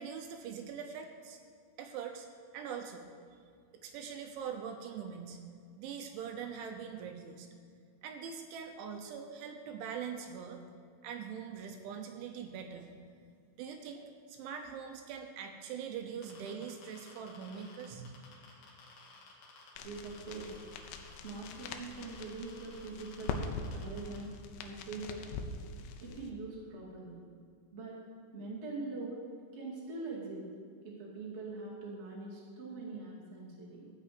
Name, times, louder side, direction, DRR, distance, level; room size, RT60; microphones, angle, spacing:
voice 1, 0.0-1.4 1.8-2.3 2.5-3.1 3.8-5.4 5.8-7.5 8.0-10.6 11.0-12.9 13.6-14.0 14.3-18.2, right 7 dB, 80° right, 5 dB, 3.0 m, -42 dB
sound 1, 16.2-24.2, left 4 dB, 60° left, 3.9 m, -56 dB
sound 2, 19.8-26.3, left 4 dB, 90° left, 3.5 m, -43 dB
voice 2, 19.8-20.6 21.2-23.5 23.7-24.3 24.6-25.5 26.0-27.2 27.7-28.0 28.3-29.2 29.5-30.5 30.8-33.9, right 3 dB, 50° right, -5 dB, 0.8 m, -43 dB
15.0 x 5.5 x 8.4 m, 2.2 s
omnidirectional pair, 5.8 m